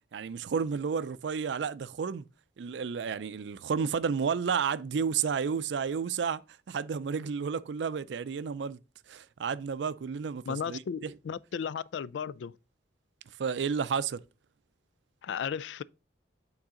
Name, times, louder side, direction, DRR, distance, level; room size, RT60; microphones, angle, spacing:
voice 1, 0.1-2.3 2.6-6.4 6.7-8.8 9.1-11.1 13.4-14.2, right 6 dB, 85° right, 0.4 m, -31 dB
voice 2, 10.5-11.0 11.2-12.5 15.2-15.8, left 7 dB, 85° left, 0.3 m, -34 dB
8.8 x 3.9 x 3.7 m
head